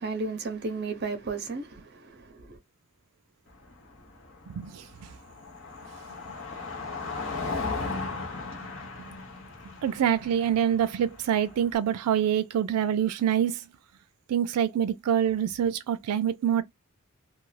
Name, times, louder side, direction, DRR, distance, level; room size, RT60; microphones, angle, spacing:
voice 1, 0.0-2.6, right 3 dB, 45° right, 0.6 m, -34 dB
Car passing by, 3.5-11.8, left 3 dB, 55° left, 0.8 m, -37 dB
voice 2, 4.5-4.9 9.1-9.2 9.8-13.6 14.3-16.6, right 9 dB, 90° right, 0.3 m, -26 dB
2.4 x 2.3 x 3.1 m
head